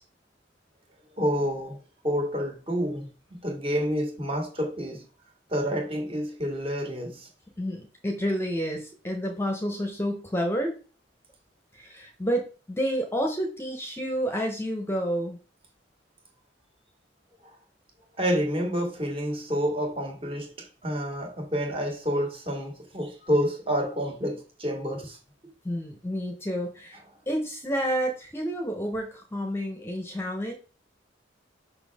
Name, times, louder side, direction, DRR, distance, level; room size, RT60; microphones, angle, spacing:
voice 1, 1.2-1.8 2.0-3.1 3.4-5.0 5.5-7.3 18.2-25.2, equal, 30° right, 2.0 m, -28 dB
voice 2, 7.6-10.8 11.7-15.4 25.6-27.0 27.3-30.5, equal, 15° left, 1.0 m, -29 dB
6.1 x 5.8 x 3.5 m
head